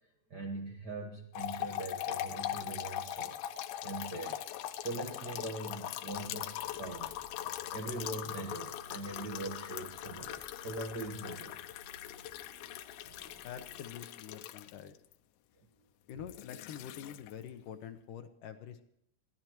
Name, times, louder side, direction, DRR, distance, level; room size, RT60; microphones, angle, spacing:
voice 1, 0.3-3.4 3.8-4.4 4.8-7.2 7.7-11.5, right 2 dB, 70° right, 2 dB, 0.9 m, -41 dB
sound 1, 1.3-15.1 16.1-17.5, left 12 dB, 90° left, 2.6 m, -41 dB
sound 2, 6.0-13.9, equal, 50° right, 4.4 m, -59 dB
voice 2, 13.4-14.9 16.1-18.8, left 9 dB, 70° left, 8 dB, 2.3 m, -46 dB
22.0 x 16.0 x 3.1 m, 0.76 s
omnidirectional pair, 4.3 m